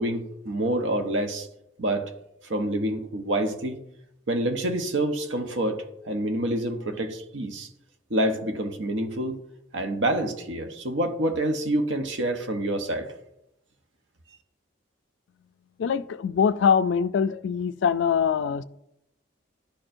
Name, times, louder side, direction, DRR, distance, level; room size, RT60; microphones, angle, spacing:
voice 1, 0.0-1.5 1.8-2.1 2.4-3.8 4.3-7.7 8.1-9.4 9.7-13.1, right 1 dB, 75° right, 0.8 m, -27 dB
voice 2, 15.8-18.6, left 7 dB, 70° left, 0.3 m, -23 dB
11.5 x 4.4 x 2.5 m
head